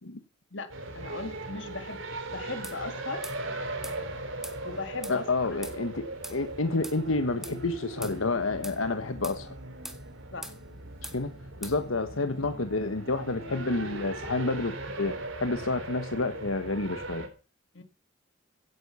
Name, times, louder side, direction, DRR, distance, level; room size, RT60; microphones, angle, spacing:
voice 1, 0.5-2.0 2.3-3.2 4.6-5.6 8.9-9.0 10.3-10.5 17.7-17.8, left 3 dB, 65° left, 2.2 m, -38 dB
sound 1, 0.7-17.3, right 2 dB, 80° right, 3.8 m, -39 dB
sound 2, 2.6-2.8 3.2-3.4 3.8-4.0 4.4-4.6 5.0-5.2 5.6-5.8 6.2-6.4 6.8-7.0 7.4-7.6 8.0-8.2 8.6-8.8 9.2-9.4 9.8-10.0 10.4-10.6 11.0-11.2 11.6-11.8, right 1 dB, ahead, 1.7 m, -41 dB
voice 2, 5.1-9.5 11.1-11.3 11.6-15.1 15.4-17.2, left 3 dB, 85° left, 1.3 m, -29 dB
16.5 x 9.8 x 5.6 m
head